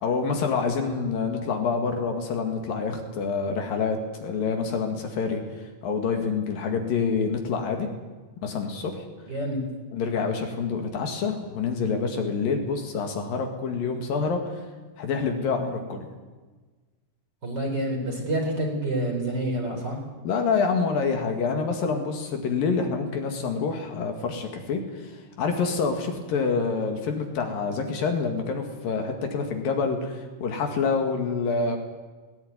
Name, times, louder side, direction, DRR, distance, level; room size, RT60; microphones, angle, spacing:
voice 1, 0.0-5.4 5.8-7.9 8.4-9.0 9.9-14.5 15.0-16.1 20.2-31.8, left 5 dB, 70° left, 4 dB, 3.6 m, -27 dB
voice 2, 9.3-9.6 17.4-20.0, right 1 dB, 25° right, 1 dB, 4.5 m, -28 dB
19.0 x 18.0 x 9.5 m, 1.3 s
omnidirectional pair, 4.4 m